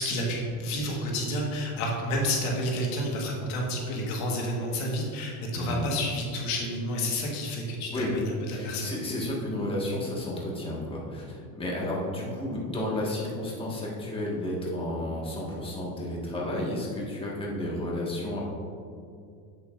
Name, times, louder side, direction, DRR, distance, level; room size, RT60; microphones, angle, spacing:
voice 1, 0.0-8.9, left 1 dB, 75° left, -1 dB, 1.6 m, -30 dB
voice 2, 8.5-18.4, left 1 dB, 10° left, -4 dB, 1.5 m, -32 dB
8.1 x 7.0 x 2.5 m, 2.4 s
supercardioid pair, 110°, 43 cm